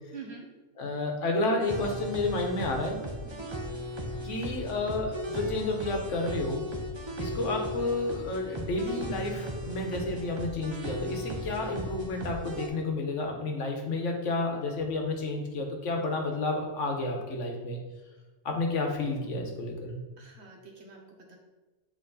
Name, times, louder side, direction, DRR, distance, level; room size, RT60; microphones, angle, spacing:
voice 1, 0.1-0.4 3.2-3.5 20.2-21.4, right 4 dB, 60° right, 1 dB, 1.3 m, -46 dB
voice 2, 0.8-3.0 4.2-6.6 7.2-17.8 18.4-20.0, left 2 dB, 80° left, 2 dB, 1.3 m, -31 dB
sound 1, 1.6-12.7, equal, 30° right, 0.6 m, -36 dB
7.7 x 3.3 x 4.0 m, 1.3 s
omnidirectional pair, 1.3 m